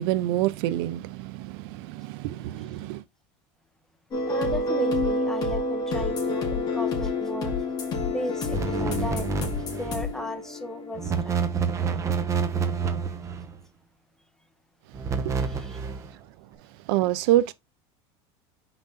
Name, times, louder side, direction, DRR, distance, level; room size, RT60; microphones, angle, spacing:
voice 1, 0.0-3.0 15.2-15.4 16.9-17.5, right 14 dB, 65° right, 0.7 m, -26 dB
sound 1, 4.1-11.4, left 2 dB, 30° left, 3.4 m, -28 dB
voice 2, 4.3-7.6 8.1-9.3 9.6-11.4 15.4-15.8, equal, 5° left, 1.2 m, -35 dB
sound 2, 8.5-10.1 10.9-13.6 14.9-16.1, right 5 dB, 20° right, 1.0 m, -28 dB
6.0 x 5.0 x 4.1 m
supercardioid pair, 145°, 14 cm